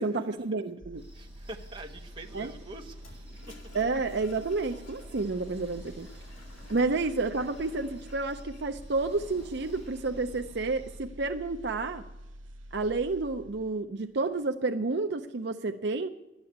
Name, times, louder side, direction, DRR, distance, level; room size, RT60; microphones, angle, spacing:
voice 1, 0.0-1.0 2.3-2.5 3.7-6.1 6.7-12.0 12.7-16.1, right 3 dB, 60° right, 5 dB, 0.6 m, -30 dB
sound 1, 0.8-13.9 14.2-14.5, equal, 80° right, 1.2 m, -47 dB
sound 2, 1.0-11.0, equal, 10° left, 5.7 m, -53 dB
voice 2, 1.1-3.7 6.8-7.0, right 2 dB, 25° right, 2 dB, 1.2 m, -46 dB
Toilet flush, 2.9-10.2, left 2 dB, 80° left, 3.2 m, -54 dB
12.5 x 9.6 x 8.6 m, 1.0 s
head